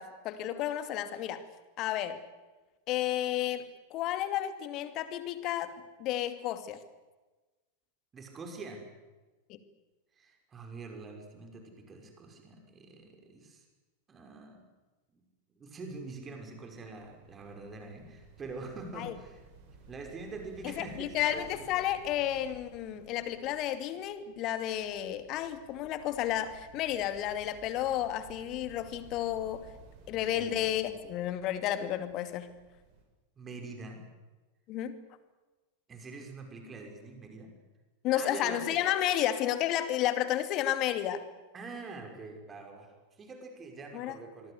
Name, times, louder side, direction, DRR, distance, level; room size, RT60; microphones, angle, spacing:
voice 1, 0.0-1.4 1.8-2.2 2.9-3.7 3.9-6.8 9.5-9.6 19.0-19.1 20.6-29.7 30.1-32.5 34.7-35.0 38.0-41.2 43.9-44.1, left 12 dB, 40° left, 10 dB, 2.5 m, -32 dB
voice 2, 8.1-8.8 10.2-13.6 14.1-14.6 15.1-15.2 15.6-19.4 19.9-21.7 30.1-30.7 33.4-34.0 35.9-37.5 38.1-38.8 41.5-44.5, right 3 dB, 20° right, 3 dB, 6.1 m, -44 dB
sound 1, 16.9-33.0, right 4 dB, 45° right, 7.5 m, -56 dB
26.0 x 22.5 x 8.2 m, 1.2 s
figure-of-eight pair, 90°, 0 cm